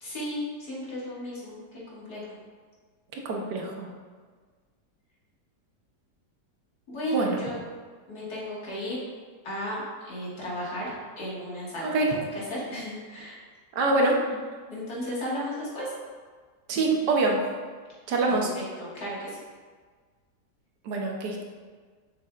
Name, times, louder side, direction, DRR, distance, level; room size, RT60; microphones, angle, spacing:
voice 1, 0.0-1.6 1.9-2.2 6.9-7.6 8.1-9.0 9.4-12.2 12.5-13.4 14.7-15.9 18.3-18.4 18.8-19.4, equal, 65° left, -7 dB, 2.4 m, -34 dB
voice 2, 3.2-3.9 7.1-7.5 11.8-12.1 13.7-14.4 16.7-17.4 18.1-18.5 20.8-21.4, right 2 dB, 80° right, 0 dB, 1.5 m, -25 dB
6.9 x 6.5 x 2.4 m, 1.5 s
omnidirectional pair, 1.8 m